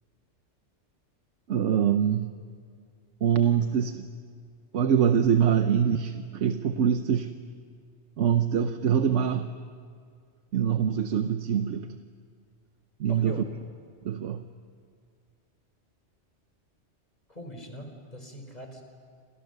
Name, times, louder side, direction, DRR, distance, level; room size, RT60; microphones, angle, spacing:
voice 1, 1.5-2.3 3.2-4.1 4.7-7.3 8.2-9.5 10.5-12.0 13.0-13.4 14.0-14.4, right 8 dB, 85° right, 9 dB, 1.2 m, -24 dB
voice 2, 13.1-13.4 17.3-18.8, left 1 dB, 35° left, 4 dB, 4.1 m, -42 dB
29.0 x 27.5 x 6.7 m, 2.2 s
omnidirectional pair, 1.2 m